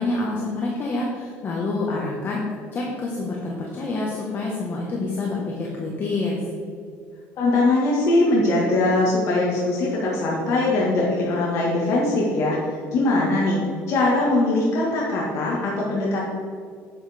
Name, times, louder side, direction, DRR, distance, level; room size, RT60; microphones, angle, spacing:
voice 1, 0.0-2.4 2.7-6.4, left 2 dB, 40° left, -2 dB, 1.5 m, -27 dB
voice 2, 7.4-13.6 13.9-16.2, left 2 dB, 60° left, -4 dB, 1.9 m, -21 dB
9.3 x 8.5 x 3.6 m, 2.2 s
cardioid pair, 120°, 5 cm